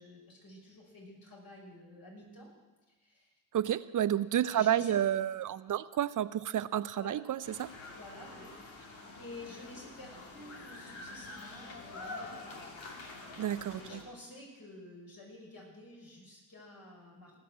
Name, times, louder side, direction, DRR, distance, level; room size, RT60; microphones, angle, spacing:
voice 1, 0.0-2.5 3.0-3.3 4.4-5.0 6.9-7.2 7.9-8.8 9.2-12.6 13.8-17.4, left 1 dB, 45° left, -2 dB, 6.1 m, -50 dB
voice 2, 3.5-7.7 13.4-14.0, right 11 dB, 40° right, 16 dB, 0.6 m, -30 dB
sound 1, 7.4-14.0, left 3 dB, 65° left, 2.6 m, -47 dB
18.5 x 6.8 x 7.7 m, 1.3 s
hypercardioid pair, 45°, 49 cm